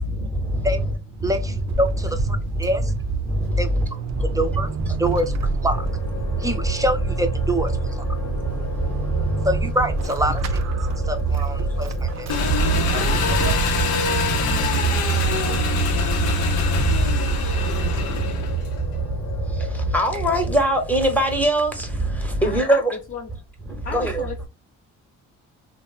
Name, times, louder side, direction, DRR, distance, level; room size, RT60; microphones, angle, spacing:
Vehicle / Accelerating revving vroom / Squeak, 1.1-18.4, right 6 dB, 60° right, 0.5 m, -30 dB
voice 1, 1.2-2.9 3.6-4.0 4.3-4.7 5.0-5.3 5.6-5.9 6.4-8.1 9.4-10.6 11.1-12.3, right 1 dB, 10° right, 0.5 m, -25 dB
sound 1, 5.7-21.5, left 7 dB, 60° left, 1.1 m, -39 dB
Engine, 12.3-18.8, left 6 dB, 80° left, 0.7 m, -26 dB
voice 2, 19.9-21.7 22.4-22.9 23.9-24.2, right 1 dB, 5° left, 0.9 m, -20 dB
voice 3, 22.4-23.3 23.8-24.5, left 5 dB, 40° left, 0.7 m, -34 dB
3.0 x 2.1 x 2.2 m
cardioid pair, 90°, 30 cm